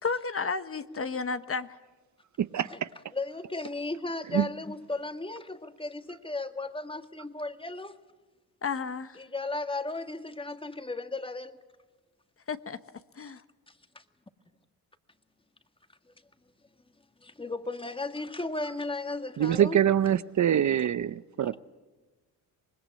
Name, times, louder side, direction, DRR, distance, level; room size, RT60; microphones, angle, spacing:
voice 1, 0.0-1.8 8.6-9.2 12.5-12.8 13.2-13.4, left 5 dB, 35° left, 1.1 m, -32 dB
voice 2, 2.4-2.9 4.3-4.5 19.4-21.6, right 10 dB, 50° right, 0.8 m, -25 dB
voice 3, 3.1-8.0 9.1-11.6 13.7-14.0 17.2-19.8 20.7-20.9 21.4-21.5, left 2 dB, 15° left, 1.8 m, -35 dB
25.5 x 20.5 x 8.6 m
cardioid pair, 80°, 38 cm